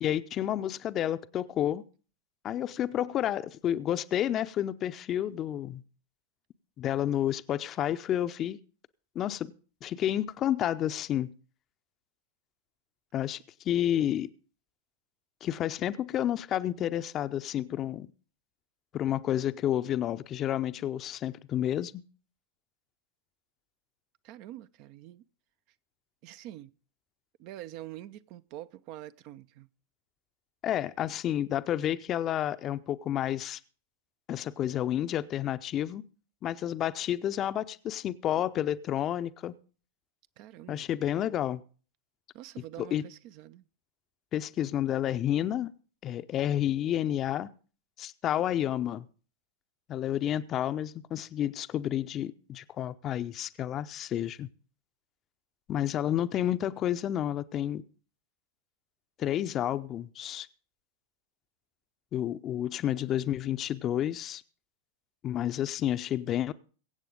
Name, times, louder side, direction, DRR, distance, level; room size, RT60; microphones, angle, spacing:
voice 1, 0.0-1.8 2.4-5.8 6.8-8.6 9.1-9.5 9.8-11.3 13.1-13.4 13.6-14.3 15.4-18.1 18.9-22.0 30.6-33.6 34.3-36.0 36.4-39.6 40.7-41.6 42.8-43.0 44.3-45.7 46.0-47.5 48.0-49.1 49.9-54.5 55.7-57.8 59.2-60.5 62.1-64.4 65.2-66.5, left 11 dB, 30° left, 0.6 m, -30 dB
voice 2, 24.2-25.2 26.2-26.7 27.4-29.7 40.4-40.9 42.3-43.7, right 14 dB, 45° right, 0.5 m, -45 dB
23.0 x 8.2 x 3.8 m
figure-of-eight pair, 90°, 0 cm